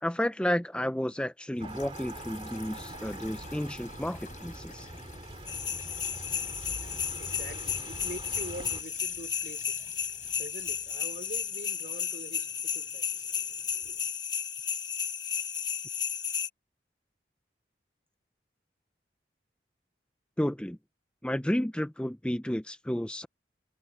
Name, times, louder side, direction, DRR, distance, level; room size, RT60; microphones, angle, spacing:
voice 1, 0.0-4.9 20.4-20.8 21.2-23.3, equal, 5° left, 0.5 m, -31 dB
sound 1, 1.5-11.7, left 4 dB, 45° left, 5.1 m, -51 dB
sound 2, 1.6-8.8, right 2 dB, 30° right, 2.3 m, -44 dB
sound 3, 5.5-16.5, left 8 dB, 25° left, 1.2 m, -33 dB
voice 2, 6.8-14.1, right 1 dB, 55° right, 3.6 m, -45 dB
head